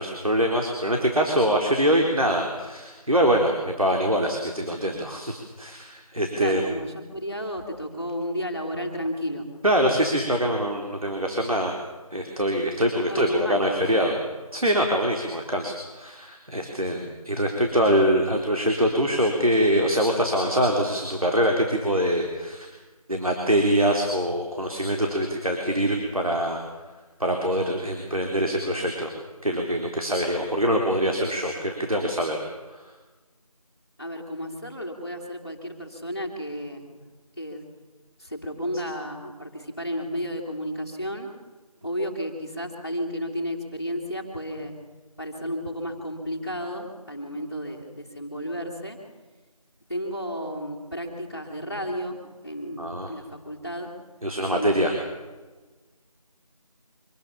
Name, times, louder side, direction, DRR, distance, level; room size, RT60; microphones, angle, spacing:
voice 1, 0.0-6.6 9.6-11.8 12.1-14.1 14.5-22.7 23.1-26.6 27.2-29.1 29.4-32.4 32.7-32.9 52.8-53.1 54.2-54.9, equal, 70° right, 2 dB, 4.0 m, -24 dB
voice 2, 6.4-9.5 13.1-14.1 34.0-36.9 37.4-37.6 38.2-41.3 41.8-44.7 45.2-49.0 49.9-53.9 54.4-55.0, equal, 30° left, -5 dB, 2.8 m, -32 dB
25.5 x 20.0 x 7.2 m, 1.3 s
figure-of-eight pair, 180°, 19 cm